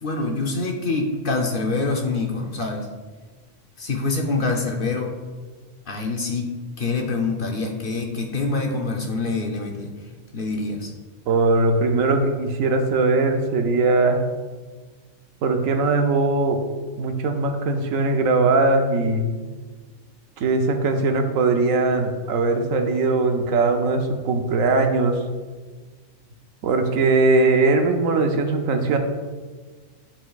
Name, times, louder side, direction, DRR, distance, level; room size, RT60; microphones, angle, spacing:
voice 1, 0.0-2.9 3.8-5.1 5.9-9.9 10.3-10.9, left 3 dB, 50° left, 1 dB, 0.8 m, -25 dB
voice 2, 11.3-14.2 15.4-16.6 17.0-19.3 20.4-25.2 26.6-29.0, right 3 dB, 85° right, 5 dB, 1.1 m, -20 dB
10.5 x 4.4 x 2.3 m, 1.4 s
omnidirectional pair, 1.4 m